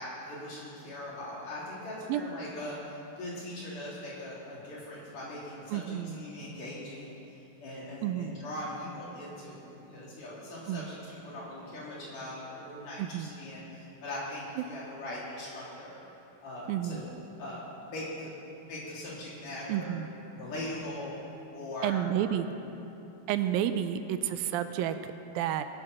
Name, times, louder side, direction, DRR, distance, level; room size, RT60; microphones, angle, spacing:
voice 1, 0.0-16.0 16.4-17.1 17.4-18.4 18.6-20.0 20.3-21.2 21.5-22.3, left 1 dB, 60° left, -7 dB, 4.8 m, -41 dB
voice 2, 5.7-6.2 8.0-8.4 10.7-10.9 13.0-13.3 14.6-14.7 16.7-17.0 19.7-20.1 21.8-22.5 23.3-25.6, right 10 dB, 85° right, 10 dB, 2.3 m, -31 dB
20.0 x 7.4 x 6.0 m, 3.0 s
omnidirectional pair, 4.2 m